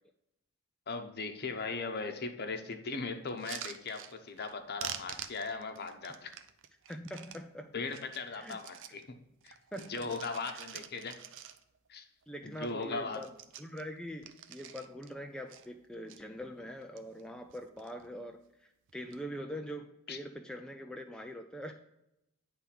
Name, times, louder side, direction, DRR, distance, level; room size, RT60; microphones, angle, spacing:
voice 1, 0.9-6.3 7.7-9.0 9.4-9.5 9.8-11.1 11.9-12.0 12.4-13.2 20.1-20.2, left 4 dB, 45° left, 6 dB, 0.9 m, -38 dB
sound 1, 3.3-4.5 4.8-7.4 7.8-9.0 9.4-11.9 12.2-12.3 12.5-12.8 13.1-15.1 15.5-16.2 16.7-17.2 17.5-18.1 18.9-19.2, right 9 dB, 60° right, 0.5 m, -47 dB
voice 2, 6.9-7.7 8.3-8.6 9.7-10.1 10.4-10.7 12.3-21.7, equal, 5° left, 4 dB, 0.3 m, -43 dB
9.8 x 3.5 x 5.9 m, 0.85 s
head